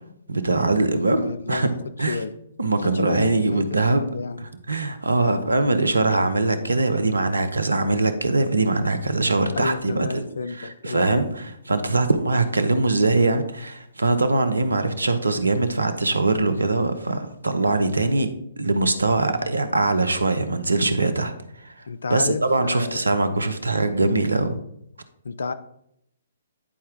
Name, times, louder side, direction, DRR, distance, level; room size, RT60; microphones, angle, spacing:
voice 1, 0.3-1.7 2.0-2.2 2.6-4.0 4.7-10.3 10.6-18.3 18.6-21.3 21.6-21.7 22.1-24.6, right 2 dB, 80° right, 10 dB, 0.8 m, -22 dB
voice 2, 1.2-1.7 2.1-2.3 2.8-4.4 5.1-5.5 9.5-11.1 21.9-23.1 25.2-25.5, left 4 dB, 70° left, 13 dB, 0.5 m, -31 dB
10.0 x 4.3 x 3.7 m, 0.75 s
figure-of-eight pair, 125°, 0 cm